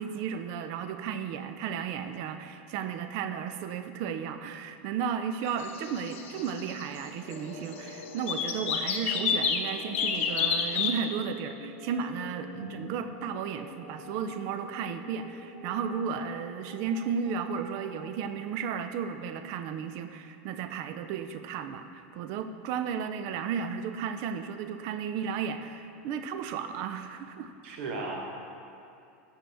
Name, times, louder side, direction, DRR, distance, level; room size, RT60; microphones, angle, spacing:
voice 1, 0.0-27.5, right 7 dB, 50° right, 9 dB, 0.4 m, -34 dB
sound 1, 5.5-7.1 7.3-7.4 7.7-9.7 9.9-10.9, left 6 dB, 80° left, 0.6 m, -29 dB
sound 2, 7.3-18.2, left 2 dB, 40° left, 1.0 m, -47 dB
voice 2, 12.5-13.0 27.6-28.3, right 3 dB, 75° right, -1 dB, 1.0 m, -36 dB
7.5 x 5.8 x 3.4 m, 2.6 s
supercardioid pair, 135°, 7 cm